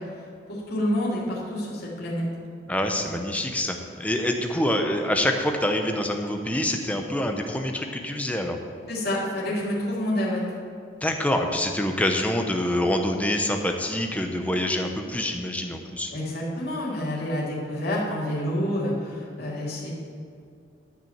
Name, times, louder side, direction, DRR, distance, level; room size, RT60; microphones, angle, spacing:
voice 1, 0.5-2.2 8.9-10.4 16.1-19.9, left 1 dB, 50° left, -6 dB, 2.8 m, -28 dB
voice 2, 2.7-8.6 11.0-16.1, left 1 dB, 5° left, 3 dB, 0.8 m, -26 dB
12.0 x 5.8 x 7.2 m, 2.4 s
head